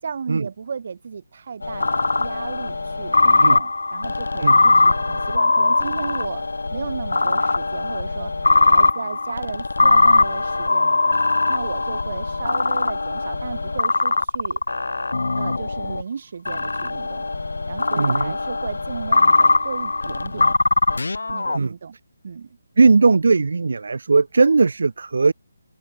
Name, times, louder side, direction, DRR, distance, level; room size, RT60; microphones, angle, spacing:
voice 1, 0.0-8.3 8.6-11.2 11.5-14.6 15.4-17.3 17.7-20.5 21.3-22.0 22.2-22.6, right 6 dB, 50° right, 5.6 m, -34 dB
sound 1, 1.6-16.0 16.5-21.6, left 3 dB, 85° left, 0.5 m, -20 dB
voice 2, 18.0-18.3 21.5-21.7 22.8-25.3, right 4 dB, 70° right, 0.7 m, -18 dB
open air
figure-of-eight pair, 160°, 0 cm